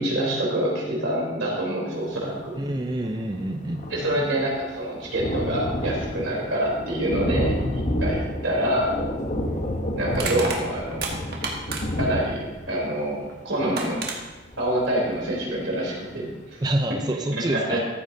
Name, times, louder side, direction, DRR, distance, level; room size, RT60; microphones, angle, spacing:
voice 1, 0.0-2.5 3.9-9.0 10.0-11.1 12.0-14.0 14.6-16.3 16.5-16.6 17.3-17.8, right 1 dB, 85° right, -3 dB, 3.5 m, -26 dB
voice 2, 2.5-4.2 16.6-17.8, right 1 dB, 20° right, 4 dB, 0.5 m, -27 dB
Thunder, 2.7-2.8 3.0-15.6 16.1-16.2 16.5-16.6, equal, 40° left, 0.9 m, -30 dB
Crushing, 10.1-12.1 13.3-13.4 13.8-14.2, right 4 dB, 55° right, 1.4 m, -30 dB
14.0 x 8.6 x 2.7 m, 1.2 s
head